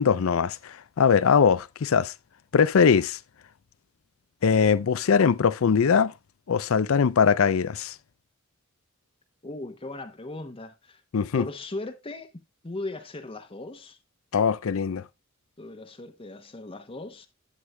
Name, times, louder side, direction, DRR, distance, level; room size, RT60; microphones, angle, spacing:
voice 1, 0.0-2.1 2.5-3.2 4.4-6.1 6.5-8.0 11.1-11.5 14.3-15.0, left 6 dB, 70° left, 0.5 m, -21 dB
voice 2, 9.4-11.0 11.3-14.0 15.6-17.3, left 2 dB, 25° left, 0.8 m, -38 dB
11.0 x 7.9 x 2.2 m
head